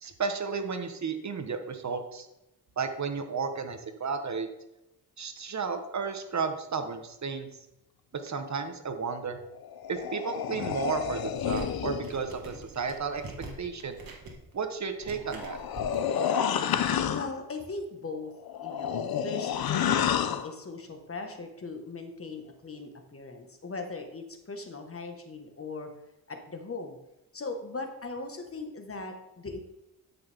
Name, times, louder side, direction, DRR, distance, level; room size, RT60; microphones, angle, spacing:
voice 1, 0.0-2.3 2.8-4.5 5.2-7.5 8.2-9.4 9.9-13.2 13.6-14.0 14.5-15.6, right 5 dB, 45° right, 7 dB, 1.1 m, -33 dB
sound 1, 9.6-12.1 15.2-17.4 18.4-20.5, left 9 dB, 65° left, 0.8 m, -29 dB
sound 2, 11.3-16.0, right 3 dB, 60° right, 2.0 m, -45 dB
voice 2, 17.1-18.3 18.6-25.9 26.3-27.0 27.3-29.6, left 3 dB, 35° left, 5 dB, 1.5 m, -39 dB
12.0 x 5.9 x 3.6 m, 0.90 s
cardioid pair, 75°, 39 cm